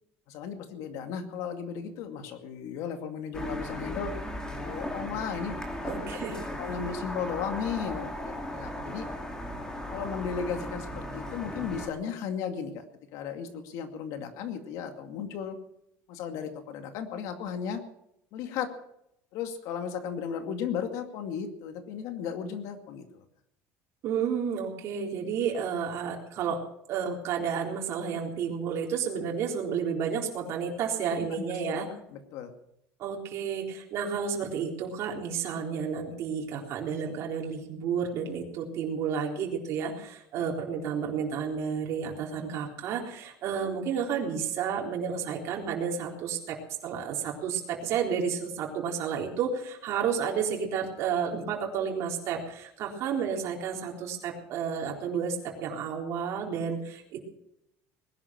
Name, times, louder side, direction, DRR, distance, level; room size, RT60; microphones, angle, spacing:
voice 1, 0.3-4.1 4.5-6.2 6.5-9.1 9.9-12.8 13.1-15.6 16.1-17.8 18.3-18.7 19.3-23.2 31.3-32.5 40.3-40.5, left 7 dB, 65° left, 7 dB, 2.3 m, -35 dB
sound 1, 3.3-11.9, left 1 dB, 10° left, 2.7 m, -37 dB
voice 2, 5.9-6.5 24.0-26.6 26.9-31.9 33.0-46.6 46.8-57.2, right 7 dB, 50° right, 0 dB, 4.0 m, -31 dB
20.0 x 11.5 x 6.0 m, 0.78 s
cardioid pair, 160°, 6 cm